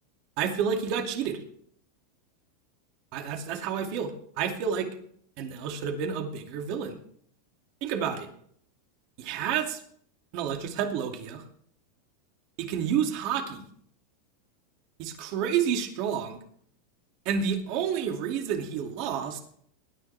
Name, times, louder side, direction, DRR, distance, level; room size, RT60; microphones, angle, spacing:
voice 1, 0.4-1.4 3.1-4.9 5.4-6.9 7.8-8.3 9.2-9.8 10.3-11.4 12.6-13.7 15.0-16.4 17.3-19.4, right 7 dB, 55° right, 3 dB, 2.5 m, -29 dB
20.5 x 10.5 x 3.5 m, 0.64 s
supercardioid pair, 125°, 0 cm